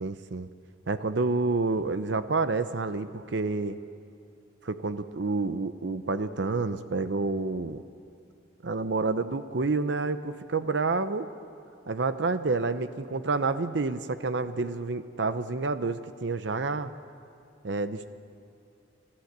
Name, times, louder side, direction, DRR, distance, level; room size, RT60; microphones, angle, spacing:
voice 1, 0.0-0.5 0.9-3.8 4.6-7.8 8.6-11.3 11.9-16.9 17.6-18.1, right 3 dB, 70° right, 11 dB, 0.7 m, -29 dB
28.5 x 13.5 x 8.1 m, 2.5 s
head